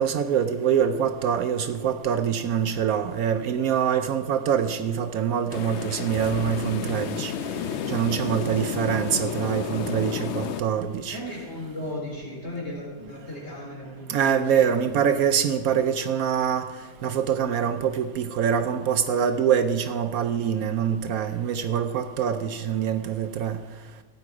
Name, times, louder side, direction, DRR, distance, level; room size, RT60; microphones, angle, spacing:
voice 1, 0.0-7.3 7.9-11.2 14.1-16.7 17.0-23.6, right 8 dB, 70° right, 9 dB, 1.0 m, -24 dB
sound 1, 5.5-10.6, left 7 dB, 60° left, 0.7 m, -31 dB
voice 2, 11.1-14.8, left 1 dB, 45° left, -3 dB, 4.1 m, -36 dB
16.5 x 9.4 x 4.8 m, 1.3 s
omnidirectional pair, 1.7 m